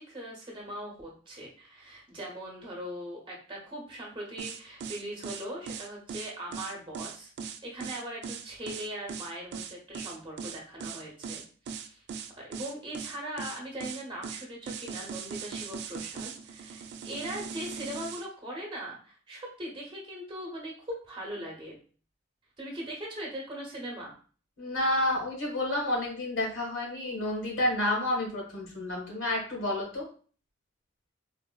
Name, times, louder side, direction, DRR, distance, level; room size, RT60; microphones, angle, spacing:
voice 1, 0.0-7.3 7.6-12.0 12.4-21.8 22.6-24.1, right 1 dB, 25° right, -2 dB, 0.9 m, -40 dB
sound 1, 4.4-18.2, right 6 dB, 60° right, 0.3 m, -39 dB
voice 2, 24.6-30.1, left 1 dB, 80° left, -2 dB, 1.4 m, -30 dB
4.1 x 2.0 x 2.2 m, 0.41 s
head